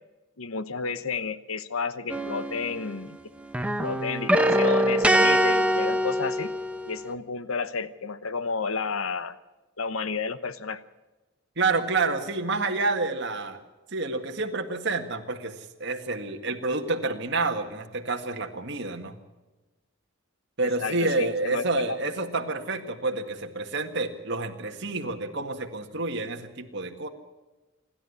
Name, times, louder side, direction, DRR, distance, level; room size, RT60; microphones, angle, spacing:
voice 1, 0.4-3.2 3.8-6.5 6.9-9.4 9.8-10.8 20.6-22.0, left 5 dB, 75° left, 14 dB, 1.0 m, -31 dB
sound 1, 2.1-3.2 3.5-7.0, equal, 5° right, 1.1 m, -24 dB
voice 2, 11.6-13.6 13.9-15.6 15.8-19.2 20.6-27.1, right 3 dB, 55° right, 3 dB, 1.9 m, -29 dB
27.0 x 12.0 x 8.4 m, 1.1 s
head